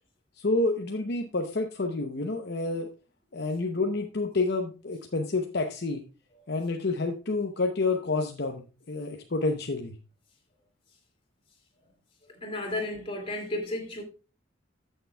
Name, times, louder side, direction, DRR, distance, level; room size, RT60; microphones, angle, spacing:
voice 1, 0.4-2.9 3.3-6.0 6.5-9.9, left 3 dB, 60° left, 0.8 m, -29 dB
voice 2, 12.4-14.0, left 1 dB, 30° left, 2.4 m, -33 dB
15.0 x 6.6 x 2.3 m
head